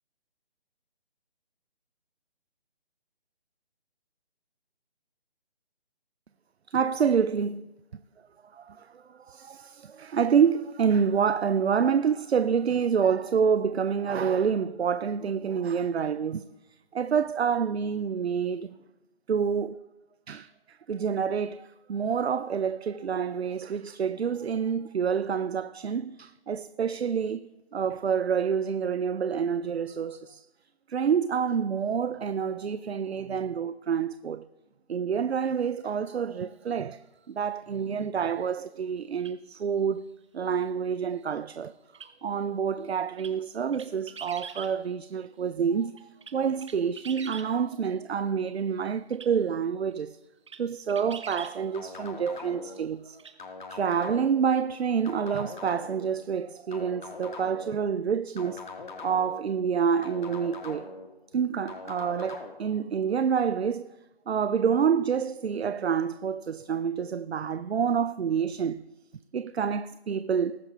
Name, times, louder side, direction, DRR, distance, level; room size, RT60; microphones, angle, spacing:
voice 1, 6.7-7.6 8.5-16.5 16.9-18.7 19.3-19.8 20.3-30.5 30.9-34.5 34.9-37.0 37.3-40.0 40.3-41.7 42.2-50.2 50.6-53.2 53.7-58.7 59.0-60.9 61.3-63.9 64.3-68.8 69.3-70.6, right 7 dB, 80° right, 0.5 m, -28 dB
sound 1, 39.2-39.3 41.9-42.1 43.2-43.4 43.7-44.7 46.0-47.5 49.1-49.3 49.9-50.0 50.5-50.6 50.9-51.6 53.2-53.3, right 6 dB, 30° right, 0.7 m, -43 dB
sound 2, 51.7-52.8 53.4-54.4 55.1-56.1 56.7-57.8 58.4-59.4 60.0-61.1 61.7-62.5, left 4 dB, 50° left, 1.6 m, -41 dB
20.0 x 11.0 x 2.3 m
figure-of-eight pair, 150°, 31 cm